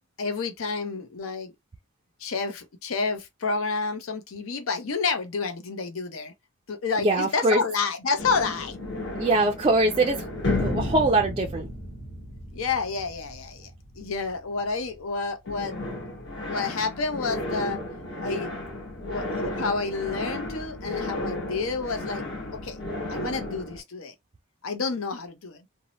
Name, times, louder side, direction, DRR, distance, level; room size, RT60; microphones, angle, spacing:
voice 1, 0.2-1.5 2.2-6.3 6.7-8.8 12.5-15.8 16.5-17.8 18.2-18.5 19.0-22.2 22.5-22.8 23.1-24.1 24.6-25.6, left 4 dB, 90° left, 0.6 m, -29 dB
voice 2, 7.0-7.6 9.2-10.3 10.6-11.7, right 2 dB, 25° right, 0.3 m, -22 dB
sound 1, 8.2-15.1 15.5-23.8, left 1 dB, 55° left, 1.1 m, -33 dB
2.7 x 2.0 x 2.9 m
head